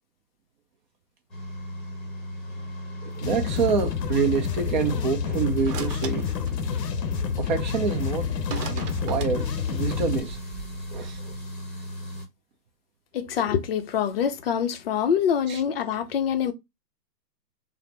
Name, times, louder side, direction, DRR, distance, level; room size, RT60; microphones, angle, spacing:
sound 1, 1.3-12.2, equal, ahead, 0.9 m, -37 dB
voice 1, 3.0-6.2 7.4-8.3 8.7-10.4 10.9-11.4 15.5-15.6, right 5 dB, 30° right, 0.5 m, -27 dB
sound 2, 3.1-10.2, left 7 dB, 80° left, 0.7 m, -29 dB
sound 3, 5.6-6.8 8.5-9.5, right 7 dB, 65° right, 0.8 m, -37 dB
voice 2, 13.1-16.5, left 8 dB, 40° left, 0.5 m, -25 dB
3.4 x 2.0 x 4.3 m
hypercardioid pair, 130°, 49 cm